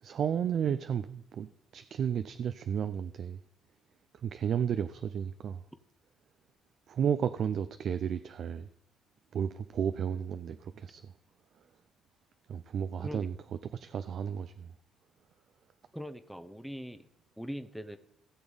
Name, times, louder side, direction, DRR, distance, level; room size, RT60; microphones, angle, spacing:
voice 1, 0.0-3.4 4.2-5.6 6.9-8.7 9.3-11.1 12.5-13.4 13.6-14.7, right 8 dB, 55° right, 0.4 m, -33 dB
voice 2, 15.9-17.1 17.4-18.0, equal, ahead, 0.8 m, -41 dB
17.0 x 7.0 x 4.0 m
cardioid pair, 95°, 0 cm